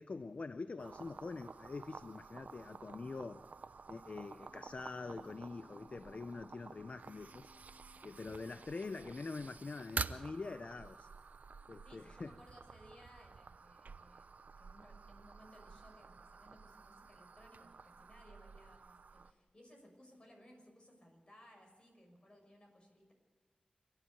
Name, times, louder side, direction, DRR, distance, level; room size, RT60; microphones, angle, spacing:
voice 1, 0.0-3.5 3.9-7.5 8.0-11.1 11.7-12.3, left 3 dB, 55° left, 0.5 m, -45 dB
sound 1, 0.8-19.3, right 5 dB, 80° right, 0.6 m, -50 dB
Wind instrument woodwind instrument, 4.4-9.9, left 4 dB, 90° left, 1.7 m, -67 dB
voice 2, 11.8-14.3 14.6-23.1, equal, 40° left, 6.1 m, -61 dB
27.5 x 11.0 x 8.6 m
wide cardioid pair, 70°, 3 cm